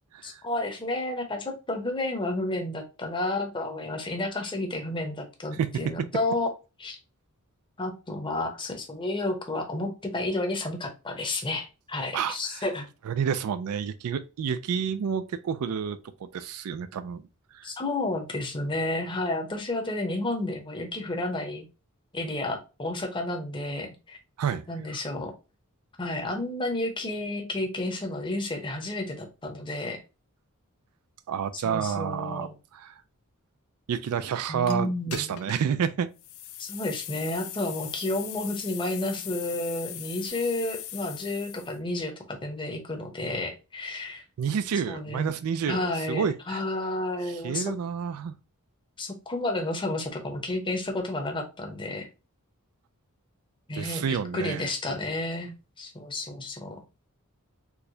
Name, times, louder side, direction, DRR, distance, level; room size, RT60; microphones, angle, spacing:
voice 1, 0.2-6.5 6.8-7.0 7.8-12.9 17.6-21.7 22.1-24.2 24.7-25.3 26.0-30.0 31.5-32.5 34.5-35.4 36.6-44.2 44.9-45.3 45.7-47.7 49.0-52.1 53.7-56.8, left 2 dB, 20° left, 0.8 m, -31 dB
voice 2, 5.6-5.9 12.1-12.7 13.1-17.2 17.5-17.7 24.4-24.6 31.3-33.0 33.9-36.1 44.4-46.6 47.4-48.3 53.7-54.7, right 7 dB, 75° right, 0.3 m, -29 dB
sound 1, 34.7-34.8 35.1-35.7 36.2-41.8, left 12 dB, 65° left, 0.4 m, -40 dB
4.5 x 2.1 x 2.6 m
head